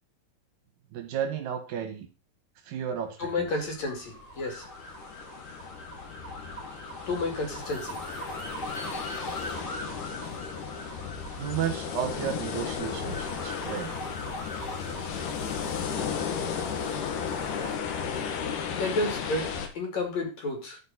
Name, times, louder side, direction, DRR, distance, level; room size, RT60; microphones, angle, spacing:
voice 1, 0.9-2.1 2.6-3.5 11.3-14.0, right 8 dB, 80° right, 6 dB, 3.3 m, -33 dB
voice 2, 3.2-4.7 7.1-8.0 18.8-20.8, left 2 dB, 55° left, 2 dB, 3.7 m, -31 dB
sound 1, 3.2-17.8, equal, 15° left, 3.0 m, -41 dB
sound 2, 4.3-19.7, left 7 dB, 70° left, 2.8 m, -35 dB
13.5 x 5.2 x 4.2 m, 0.32 s
omnidirectional pair, 4.0 m